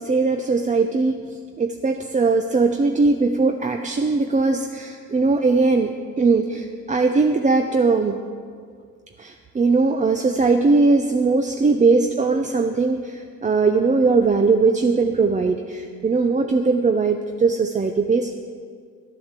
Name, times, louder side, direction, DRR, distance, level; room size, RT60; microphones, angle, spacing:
voice 1, 0.0-8.2 9.2-18.3, right 4 dB, 25° right, 5 dB, 0.6 m, -20 dB
12.5 x 7.8 x 7.3 m, 2.1 s
cardioid pair, 90°, 30 cm